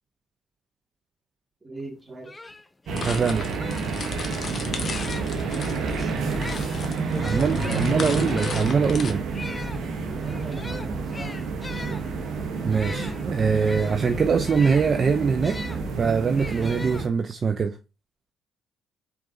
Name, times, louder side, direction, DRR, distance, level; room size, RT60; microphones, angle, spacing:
voice 1, 1.6-2.3 5.5-6.4 7.1-8.4 10.1-12.0, right 3 dB, 25° right, 2.2 m, -37 dB
sound 1, 1.9-2.0 2.2-5.5 6.2-15.8 16.4-17.5, left 2 dB, 20° left, 0.5 m, -40 dB
sound 2, 2.9-17.1, right 4 dB, 65° right, 1.0 m, -29 dB
sound 3, 3.0-9.1, left 5 dB, 50° left, 0.9 m, -37 dB
voice 2, 3.0-3.5 7.2-9.2 12.6-15.6 16.0-17.8, right 5 dB, 45° right, 0.5 m, -23 dB
4.6 x 3.9 x 2.7 m
hypercardioid pair, 55°, 0 cm